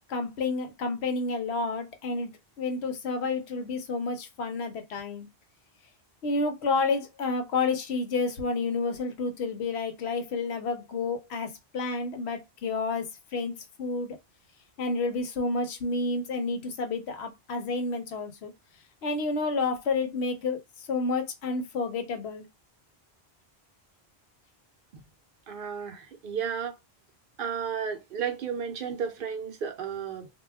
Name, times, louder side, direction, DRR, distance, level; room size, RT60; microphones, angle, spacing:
voice 1, 0.1-2.3 2.6-5.3 6.2-13.5 13.8-14.2 14.8-18.5 19.0-22.5, left 3 dB, 85° left, 1.0 m, -30 dB
voice 2, 25.5-26.8 27.4-30.3, right 7 dB, 65° right, 0.7 m, -33 dB
2.2 x 2.2 x 3.3 m
omnidirectional pair, 1.1 m